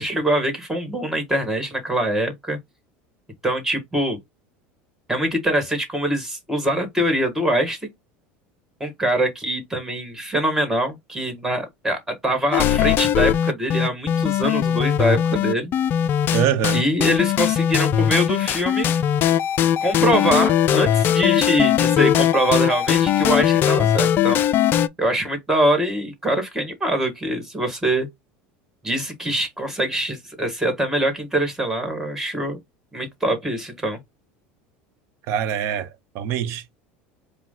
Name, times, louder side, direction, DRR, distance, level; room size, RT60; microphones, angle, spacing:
voice 1, 0.0-2.6 3.4-4.2 5.1-7.9 8.8-15.7 16.7-18.9 19.8-24.4 25.0-28.1 28.8-32.6 32.9-34.0, right 1 dB, 5° right, 1.9 m, -23 dB
sound 1, 12.5-24.9, left 10 dB, 40° left, 0.4 m, -20 dB
voice 2, 16.3-16.8 35.3-36.8, right 9 dB, 60° right, 0.9 m, -24 dB
4.9 x 2.2 x 3.7 m
supercardioid pair, 115°, 5 cm